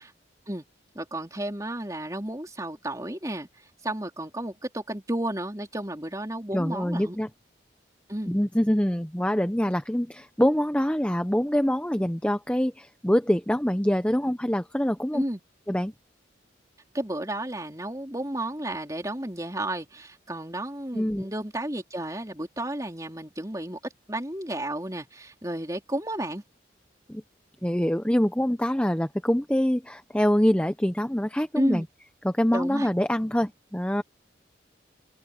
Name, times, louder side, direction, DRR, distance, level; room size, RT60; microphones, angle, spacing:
voice 1, 0.9-3.5 3.8-7.2 8.1-8.3 15.1-15.4 16.9-23.8 24.1-26.4 31.6-31.8 32.5-32.9, right 1 dB, 20° right, 3.9 m, -32 dB
voice 2, 6.5-7.3 8.3-15.2 15.7-15.9 20.9-21.3 27.1-27.2 27.6-31.8 32.2-34.0, equal, 5° left, 0.7 m, -25 dB
head